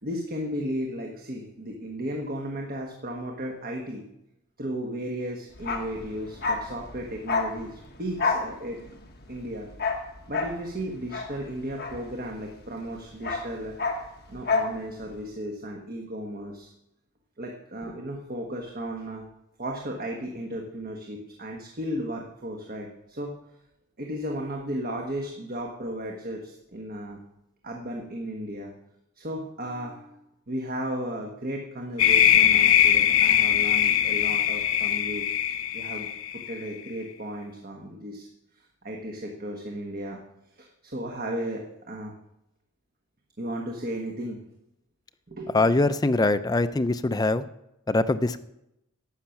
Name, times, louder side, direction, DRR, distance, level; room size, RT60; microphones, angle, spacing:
voice 1, 0.0-4.0 4.6-8.8 9.3-9.7 10.3-13.7 14.3-16.7 17.4-19.2 19.6-23.4 24.0-27.2 27.6-28.7 29.2-30.2 30.5-35.2 35.7-36.1 36.3-38.3 38.6-40.2 40.6-42.1 43.4-44.4 45.3-45.7, equal, 40° right, 1 dB, 1.3 m, -35 dB
Bark, 5.6-12.6 12.9-14.8 15.0-15.2, left 4 dB, 45° left, 1.5 m, -30 dB
sound 1, 32.0-36.5, left 10 dB, 65° left, 0.8 m, -21 dB
voice 2, 45.5-47.5 47.9-48.4, left 2 dB, 15° left, 12 dB, 0.4 m, -23 dB
11.5 x 8.6 x 5.8 m, 0.84 s
head